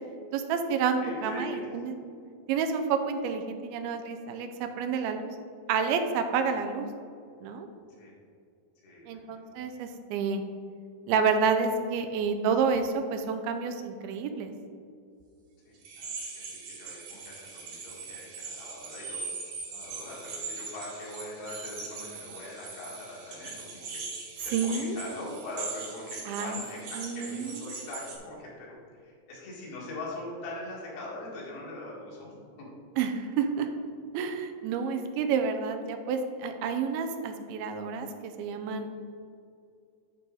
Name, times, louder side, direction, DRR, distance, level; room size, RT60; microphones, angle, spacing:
voice 1, 0.3-1.9 2.5-5.3 5.7-6.9 7.4-7.7 9.1-10.4 11.1-14.5 24.5-25.0 26.3-26.6 27.0-27.6 33.0-33.7 34.1-38.9, right 5 dB, 90° right, 6 dB, 2.5 m, -29 dB
voice 2, 1.0-1.7 8.0-8.1 8.8-9.6 15.7-19.2 19.7-32.7, left 2 dB, 80° left, -5 dB, 3.9 m, -42 dB
sound 1, 15.8-28.2, right 4 dB, 55° right, 1.8 m, -40 dB
11.5 x 4.8 x 3.9 m, 2.4 s
omnidirectional pair, 4.3 m